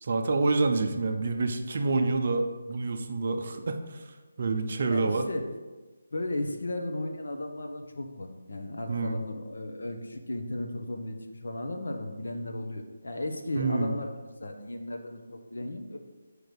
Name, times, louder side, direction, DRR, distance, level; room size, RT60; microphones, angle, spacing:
voice 1, 0.0-4.1 4.4-5.3 8.9-9.2 13.5-13.9, right 3 dB, 30° right, 6 dB, 0.5 m, -27 dB
voice 2, 4.9-5.6 6.1-14.1 14.4-16.0, left 1 dB, 65° left, 4 dB, 1.0 m, -35 dB
6.1 x 4.8 x 5.1 m, 1.2 s
hypercardioid pair, 180°, 0 cm